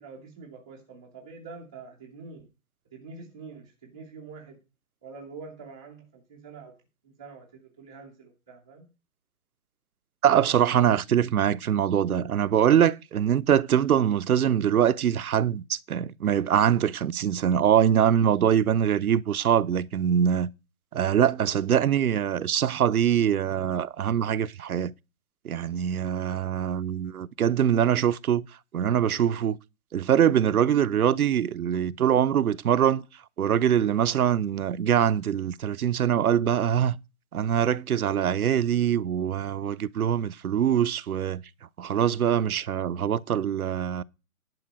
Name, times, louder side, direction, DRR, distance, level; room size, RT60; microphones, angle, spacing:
voice 1, 0.0-2.5 2.9-4.6 5.0-6.7 7.0-8.9, right 4 dB, 5° right, 0.4 m, -45 dB
voice 2, 10.2-20.5 20.9-24.9 25.4-28.5 28.7-29.6 29.9-33.0 33.4-37.0 37.3-41.4 41.8-44.0, right 9 dB, 85° right, 0.7 m, -23 dB
10.5 x 4.9 x 7.5 m
hypercardioid pair, 150°, 42 cm